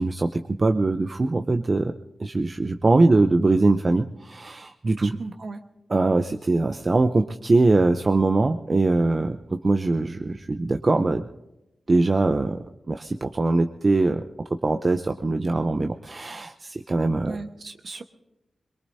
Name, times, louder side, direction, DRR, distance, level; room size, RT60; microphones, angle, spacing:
voice 1, 0.0-1.9 2.2-5.2 5.9-11.3 11.9-12.6 12.9-14.2 14.5-17.4, right 3 dB, 45° right, 7 dB, 0.7 m, -22 dB
voice 2, 5.0-5.6 17.3-18.0, right 3 dB, 60° right, 6 dB, 1.3 m, -36 dB
22.5 x 22.5 x 2.8 m, 0.90 s
cardioid pair, 50°, 0 cm